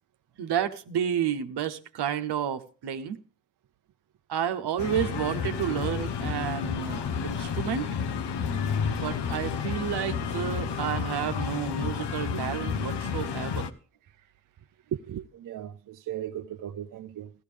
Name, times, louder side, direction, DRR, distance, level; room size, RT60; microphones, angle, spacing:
voice 1, 0.4-3.2 4.3-8.0 9.0-13.7, right 9 dB, 70° right, 1.0 m, -31 dB
sound 1, 4.8-13.7, left 6 dB, 75° left, 1.0 m, -31 dB
voice 2, 14.9-17.3, right 10 dB, 50° right, 0.6 m, -37 dB
15.0 x 13.0 x 3.4 m
supercardioid pair, 45°, 41 cm